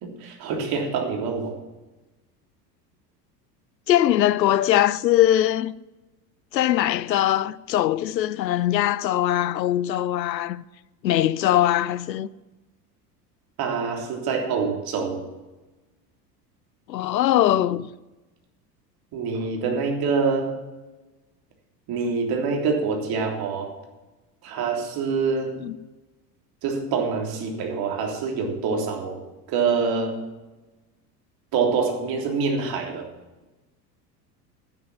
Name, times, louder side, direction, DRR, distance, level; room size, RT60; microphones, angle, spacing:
voice 1, 0.0-1.5 13.6-15.2 19.1-20.6 21.9-23.7 24.4-25.6 26.6-29.2 29.5-30.2 31.5-33.1, right 5 dB, 45° right, 3.4 m, -25 dB
voice 2, 3.9-5.7 6.5-10.6 11.0-12.3 16.9-17.9 25.6-25.8, left 12 dB, 80° left, 0.6 m, -21 dB
10.5 x 10.0 x 7.3 m
figure-of-eight pair, 80°, 50 cm